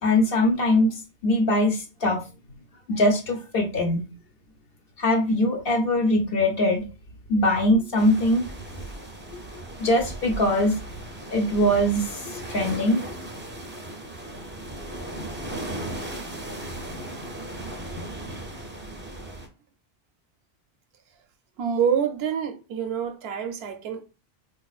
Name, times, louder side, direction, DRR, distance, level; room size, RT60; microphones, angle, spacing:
voice 1, 0.0-0.9 1.2-2.2 2.5-2.6 2.9-4.0 5.0-6.9 7.3-8.5 9.8-10.8 11.3-13.1, left 1 dB, 65° left, 1.0 m, -22 dB
sound 1, 8.0-19.5, right 1 dB, 20° right, 0.3 m, -37 dB
voice 2, 21.6-24.0, right 7 dB, 80° right, 0.8 m, -26 dB
3.9 x 2.4 x 2.4 m
omnidirectional pair, 1.0 m